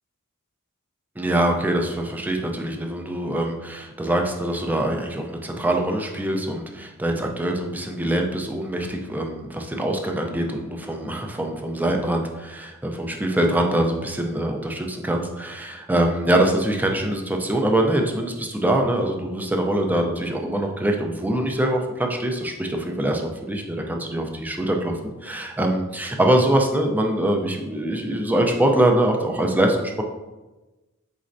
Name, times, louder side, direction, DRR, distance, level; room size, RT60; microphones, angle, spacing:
voice 1, 1.2-30.0, right 1 dB, 10° right, 2 dB, 0.4 m, -23 dB
4.3 x 4.1 x 2.5 m, 1.1 s
head